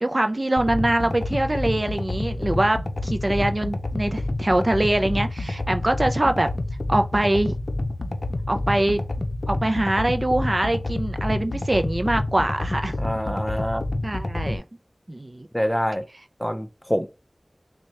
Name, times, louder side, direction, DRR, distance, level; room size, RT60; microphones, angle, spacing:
voice 1, 0.0-6.5 6.9-7.5 8.5-9.0 9.5-13.0 14.0-14.6 15.1-15.5, right 1 dB, 45° right, 0.4 m, -23 dB
sound 1, 0.6-14.6, left 2 dB, 85° left, 0.5 m, -28 dB
voice 2, 13.0-13.8 15.5-16.0 16.4-17.1, equal, 5° left, 0.7 m, -25 dB
6.1 x 2.2 x 2.8 m
wide cardioid pair, 50°, 0 cm